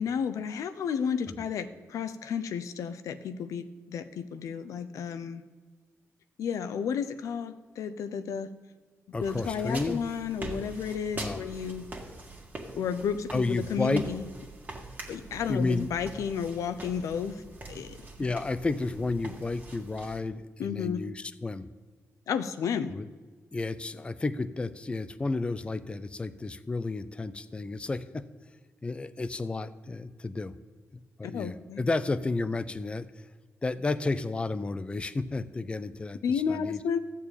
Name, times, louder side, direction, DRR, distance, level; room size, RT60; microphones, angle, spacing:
voice 1, 0.0-5.4 6.4-8.5 9.2-11.9 12.7-14.2 15.1-18.0 20.6-21.0 22.3-22.9 31.2-31.8 36.2-37.0, left 7 dB, 90° left, 11 dB, 0.6 m, -32 dB
voice 2, 9.1-10.0 11.2-11.4 13.3-14.0 15.5-15.9 18.2-21.7 22.9-23.1 23.5-28.3 28.8-30.5 31.2-33.1 33.6-36.8, left 3 dB, 20° left, 12 dB, 0.5 m, -32 dB
sound 1, 9.2-20.2, right 2 dB, 35° right, 1.8 m, -43 dB
13.5 x 4.7 x 8.6 m, 1.4 s
cardioid pair, 120°, 5 cm